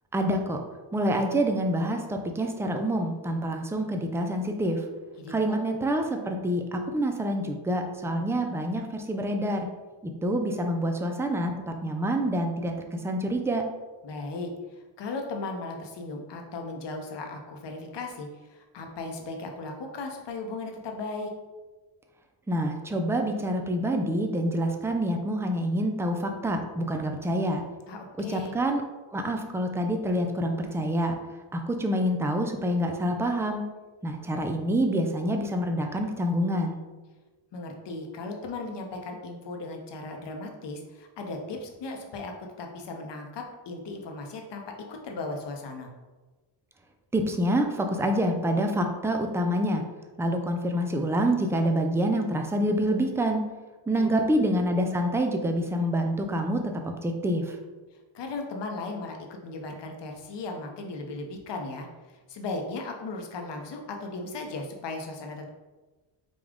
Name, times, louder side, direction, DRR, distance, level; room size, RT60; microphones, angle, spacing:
voice 1, 0.1-0.6 0.9-4.8 5.3-9.7 10.0-13.6 22.5-27.6 28.3-28.8 29.1-31.1 31.5-33.6 34.0-36.8 47.1-49.8 50.2-53.4 53.9-57.6, equal, 5° right, 4 dB, 0.4 m, -27 dB
voice 2, 5.2-5.6 14.0-14.5 15.0-21.3 27.9-28.5 37.5-44.6 44.9-45.9 54.0-54.1 58.1-65.5, left 3 dB, 60° left, 3 dB, 0.9 m, -37 dB
5.2 x 2.3 x 3.5 m, 1.2 s
cardioid pair, 80°, 49 cm